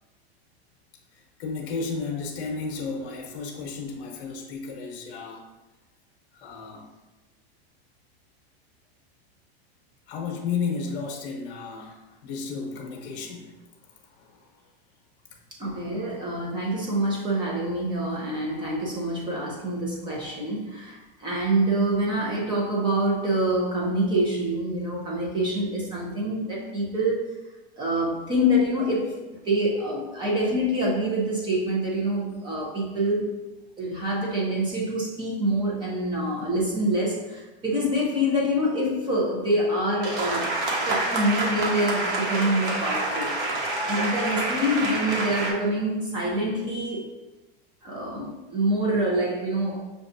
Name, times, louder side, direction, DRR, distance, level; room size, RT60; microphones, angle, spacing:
voice 1, 1.4-5.4 6.4-6.9 10.1-13.5 14.2-14.4, left 5 dB, 60° left, -1 dB, 0.9 m, -33 dB
voice 2, 15.6-27.4 27.8-33.3 33.8-40.6 40.8-43.3 43.9-47.1 47.8-49.8, right 1 dB, 15° right, -5 dB, 0.6 m, -26 dB
sound 1, 40.0-45.5, right 2 dB, 55° right, 1.1 m, -27 dB
6.6 x 2.3 x 2.6 m, 1.1 s
supercardioid pair, 165°, 32 cm